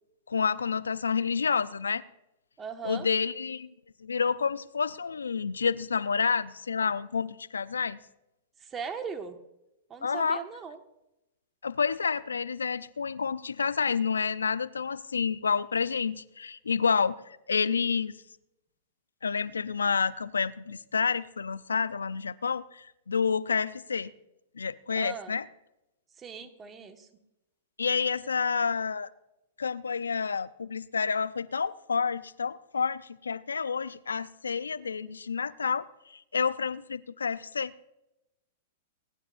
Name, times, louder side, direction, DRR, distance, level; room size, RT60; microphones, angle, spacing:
voice 1, 0.3-2.0 2.8-3.7 4.0-8.0 10.0-10.4 11.6-17.2 17.5-18.1 19.2-24.1 24.6-25.4 27.8-29.1 29.6-35.9 36.1-37.9, left 5 dB, 90° left, 17 dB, 0.5 m, -29 dB
voice 2, 2.6-3.1 8.6-9.4 9.9-10.8 24.9-25.3 26.2-27.1, right 6 dB, 25° right, 7 dB, 1.5 m, -39 dB
28.0 x 11.0 x 2.6 m, 0.91 s
hypercardioid pair, 110°, 0 cm